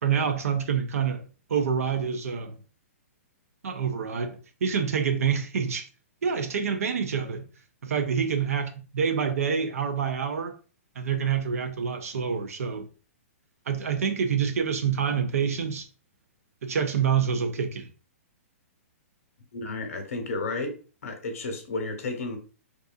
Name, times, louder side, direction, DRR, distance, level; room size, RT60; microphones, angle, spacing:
voice 1, 0.0-1.2 1.5-2.6 3.6-5.9 6.2-7.5 7.8-10.6 11.0-12.9 13.7-15.9 16.6-17.9, right 7 dB, 80° right, 0.4 m, -27 dB
voice 2, 19.5-20.8 21.0-22.4, left 3 dB, 70° left, 0.8 m, -32 dB
2.6 x 2.3 x 2.3 m
hypercardioid pair, 130°, 8 cm